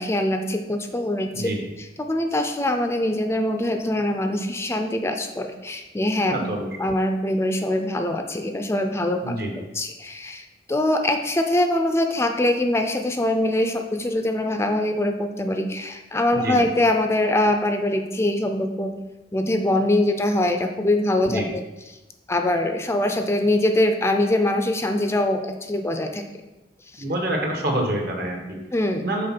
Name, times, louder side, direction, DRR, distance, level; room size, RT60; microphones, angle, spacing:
voice 1, 0.0-1.5 1.8-6.3 6.8-19.0 19.3-21.6 22.3-26.2 26.9-27.0 28.7-29.0, left 1 dB, 15° left, 5 dB, 0.5 m, -23 dB
voice 2, 6.3-6.7 9.2-9.5 16.3-16.7 21.2-21.5 27.0-28.6 29.0-29.3, right 1 dB, 60° right, 1 dB, 1.4 m, -26 dB
6.5 x 4.2 x 5.9 m, 1.1 s
head